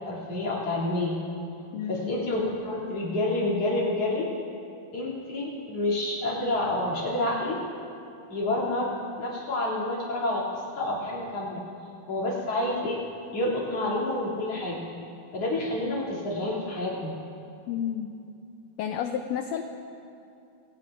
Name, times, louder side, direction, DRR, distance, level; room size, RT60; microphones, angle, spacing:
voice 1, 0.1-1.2 1.9-4.3 4.9-7.6 8.3-11.6 12.1-13.0 13.3-14.9 15.3-17.2, left 1 dB, 50° left, -6 dB, 3.8 m, -28 dB
voice 2, 1.7-2.1 17.7-18.1 18.8-19.6, left 9 dB, 80° left, 6 dB, 1.6 m, -31 dB
24.0 x 17.5 x 2.5 m, 2.6 s
omnidirectional pair, 3.6 m